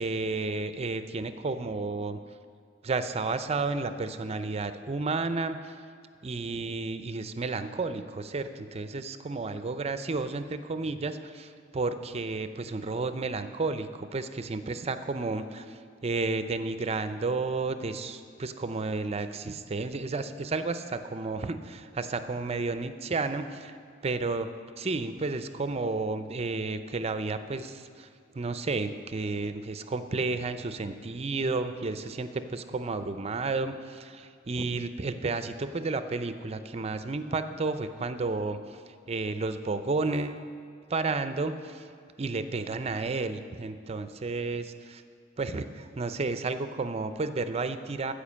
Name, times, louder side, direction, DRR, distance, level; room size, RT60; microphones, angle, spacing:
voice 1, 0.0-2.2 2.8-5.6 6.2-15.7 16.0-23.7 24.0-24.5 24.8-28.1 28.3-38.6 39.1-40.4 40.9-41.8 42.2-45.0 45.4-48.1, right 3 dB, 35° right, 10 dB, 0.5 m, -32 dB
13.5 x 5.1 x 7.4 m, 2.2 s
head